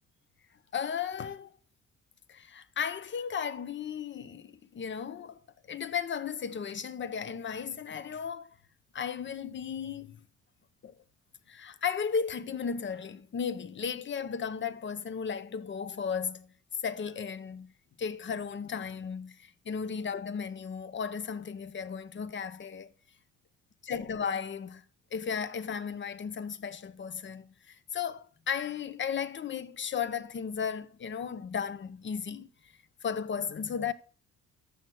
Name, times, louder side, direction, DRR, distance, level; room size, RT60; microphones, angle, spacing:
voice 1, 0.7-1.5 2.3-8.5 8.9-10.2 10.8-11.0 11.5-16.5 16.8-17.7 18.0-22.9 23.8-24.8 25.1-32.5 33.0-33.9, left 6 dB, 40° left, 0.8 m, -35 dB
14.0 x 6.4 x 2.2 m
cardioid pair, 90°, 30 cm